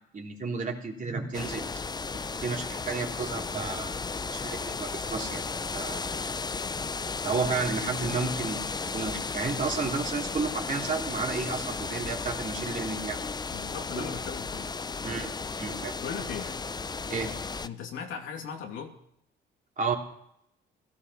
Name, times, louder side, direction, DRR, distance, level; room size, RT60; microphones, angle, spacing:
voice 1, 0.1-1.6 2.4-4.0 4.3-5.4 5.7-6.0 7.2-8.7 8.9-13.2 14.0-14.1 15.0-15.3 15.6-15.9 17.1-17.3 19.8-20.0, right 4 dB, 40° right, 0 dB, 3.2 m, -32 dB
sound 1, 1.3-17.7, left 4 dB, 20° left, 0.5 m, -34 dB
voice 2, 13.5-14.7 16.0-16.5 17.6-19.0, left 7 dB, 85° left, 2 dB, 2.6 m, -38 dB
17.0 x 14.0 x 5.5 m, 0.76 s
cardioid pair, 90°, 20 cm